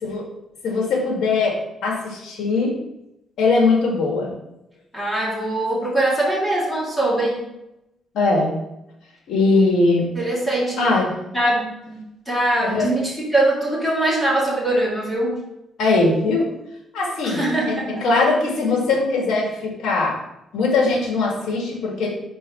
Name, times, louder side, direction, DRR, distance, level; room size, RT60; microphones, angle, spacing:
voice 1, 0.6-2.7 3.4-4.4 8.1-8.5 9.3-10.0 10.8-11.1 12.6-12.9 15.8-16.5 16.9-20.2 20.5-22.3, left 3 dB, 75° left, -1 dB, 2.1 m, -20 dB
voice 2, 4.9-7.5 10.1-10.9 11.3-12.0 12.3-15.4 17.2-18.1, right 1 dB, 10° left, -6 dB, 2.4 m, -22 dB
4.7 x 4.2 x 5.7 m, 0.88 s
cardioid pair, 90°, 0 cm